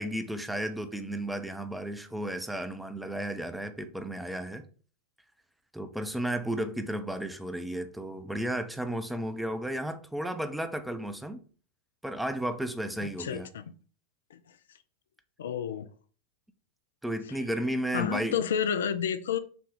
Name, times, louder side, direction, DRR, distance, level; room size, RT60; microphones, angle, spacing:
voice 1, 0.0-4.6 5.7-11.4 12.0-13.5 17.0-18.4, right 1 dB, 5° right, 9 dB, 0.6 m, -33 dB
voice 2, 13.0-13.6 14.3-14.4 15.4-15.9 17.9-19.4, left 8 dB, 70° left, 11 dB, 0.3 m, -30 dB
5.9 x 2.3 x 3.7 m, 0.40 s
figure-of-eight pair, 90°, 0 cm